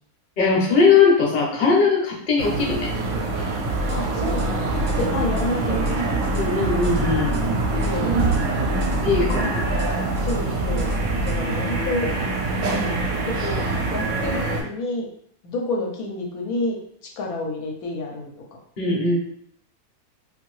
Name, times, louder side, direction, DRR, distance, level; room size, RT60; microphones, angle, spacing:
voice 1, 0.4-2.9 6.3-7.3 9.0-9.6 18.8-19.2, left 4 dB, 40° left, -2 dB, 0.7 m, -19 dB
sound 1, 2.4-14.6, right 3 dB, 70° right, 1.0 m, -25 dB
sound 2, 3.6-11.4, equal, 50° right, 0.5 m, -28 dB
voice 2, 3.9-4.7 5.0-6.2 7.8-8.3 10.2-10.9 11.3-12.1 12.6-15.1 15.4-16.8 17.2-18.3, left 2 dB, 80° left, 0 dB, 1.1 m, -29 dB
2.7 x 2.6 x 3.1 m, 0.65 s
omnidirectional pair, 1.6 m